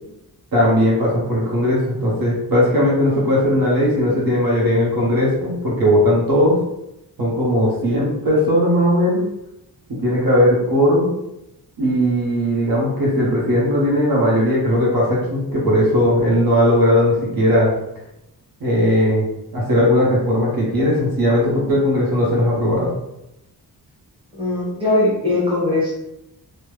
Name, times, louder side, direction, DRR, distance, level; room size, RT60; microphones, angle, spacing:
voice 1, 0.5-6.6 7.2-9.2 10.0-11.1 11.8-17.7 18.6-19.2 19.5-22.9, equal, 60° right, -5 dB, 0.9 m, -18 dB
voice 2, 24.3-25.9, left 2 dB, 15° right, -8 dB, 1.1 m, -20 dB
3.2 x 2.1 x 3.1 m, 0.88 s
wide cardioid pair, 165°, 39 cm